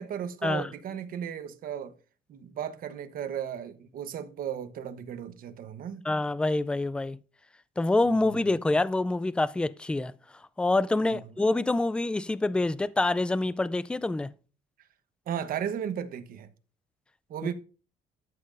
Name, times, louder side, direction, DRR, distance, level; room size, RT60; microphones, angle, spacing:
voice 1, 0.0-1.9 2.3-6.0 8.1-8.4 11.0-11.2 15.3-16.5 17.3-17.5, right 9 dB, 60° right, 1.1 m, -35 dB
voice 2, 6.1-7.2 7.8-10.1 10.6-14.3, left 2 dB, 5° left, 0.3 m, -26 dB
12.5 x 7.4 x 2.6 m
cardioid pair, 110°, 17 cm